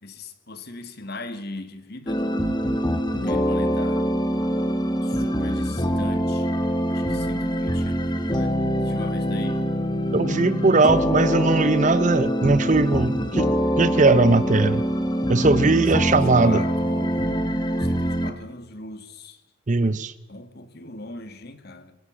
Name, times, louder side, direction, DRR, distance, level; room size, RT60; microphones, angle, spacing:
voice 1, 0.0-2.6 3.1-4.1 5.0-9.6 15.9-17.4 17.8-19.4 20.3-22.0, left 2 dB, 50° left, 2.0 m, -39 dB
sound 1, 2.1-18.3, equal, 20° left, 1.6 m, -24 dB
voice 2, 10.1-14.8 15.3-16.6 19.7-20.1, right 3 dB, 35° right, 0.7 m, -19 dB
22.5 x 17.5 x 7.4 m
head